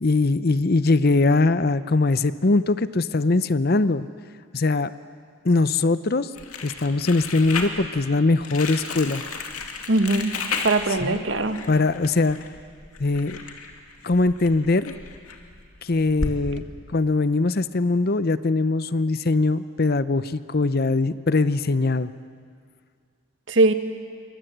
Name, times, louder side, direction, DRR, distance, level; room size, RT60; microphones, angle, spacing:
voice 1, 0.0-4.1 4.5-4.9 5.4-6.3 6.6-9.2 11.0-11.2 11.7-12.4 13.0-13.4 14.0-14.9 15.8-16.6 16.9-22.1, left 3 dB, 45° left, 14 dB, 0.6 m, -21 dB
Crumpling crinkling, 6.4-16.3, left 4 dB, 85° left, 2.5 m, -34 dB
voice 2, 9.9-10.3 10.6-11.6 23.5-23.7, right 2 dB, 55° right, 8 dB, 1.4 m, -20 dB
27.5 x 23.5 x 8.1 m, 2.1 s
head